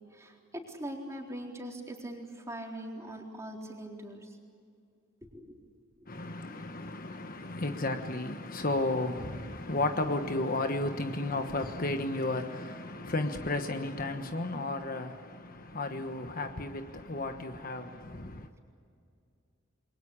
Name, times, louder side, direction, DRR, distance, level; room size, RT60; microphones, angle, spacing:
voice 1, 0.0-4.4 5.3-5.5, right 1 dB, 15° right, 4.0 m, -42 dB
voice 2, 6.1-18.5, left 2 dB, 45° left, 1.3 m, -33 dB
29.0 x 22.5 x 8.7 m
head